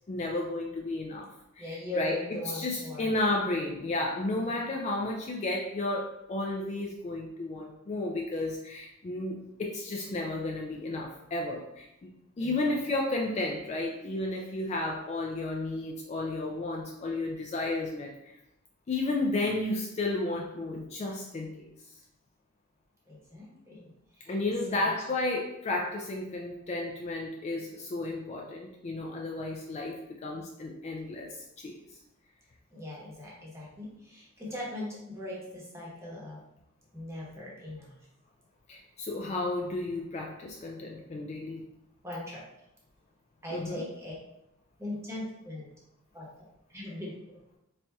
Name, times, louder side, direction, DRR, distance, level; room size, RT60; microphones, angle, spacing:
voice 1, 0.1-1.3 1.6-2.2 2.5-12.1 12.4-18.4 18.9-21.7 24.3-31.7 38.7-41.6 43.5-43.8, left 2 dB, 30° left, -1 dB, 0.3 m, -32 dB
voice 2, 1.6-3.2 4.3-4.8 12.4-13.0 23.1-24.4 24.7-24.9 32.7-36.4 36.9-37.9 42.0-42.4 43.4-44.1 44.8-45.7 46.1-46.3 46.7-47.1, left 1 dB, 15° right, -5 dB, 0.9 m, -40 dB
4.2 x 2.7 x 2.3 m, 0.85 s
head